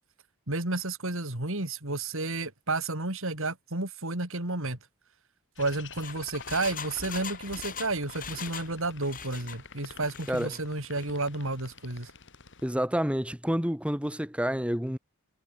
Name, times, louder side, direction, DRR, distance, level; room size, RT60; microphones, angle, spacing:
voice 1, 0.5-4.8 5.6-12.1, right 2 dB, 60° right, 4.3 m, -31 dB
sound 1, 5.6-12.7, left 5 dB, 55° left, 5.4 m, -48 dB
Engine, 5.8-8.7 9.0-9.6 10.0-10.6 11.0-11.1, left 7 dB, 40° left, 5.0 m, -41 dB
voice 2, 12.6-15.0, equal, 5° right, 2.4 m, -28 dB
head